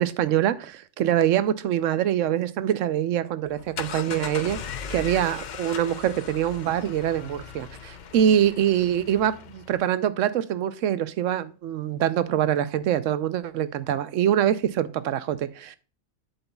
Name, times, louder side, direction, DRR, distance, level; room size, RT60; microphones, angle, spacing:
voice 1, 0.0-4.6 4.9-15.8, right 10 dB, 85° right, 1.0 m, -24 dB
sound 1, 3.4-9.8, left 7 dB, 55° left, 0.6 m, -38 dB
7.9 x 7.8 x 2.3 m
omnidirectional pair, 1.3 m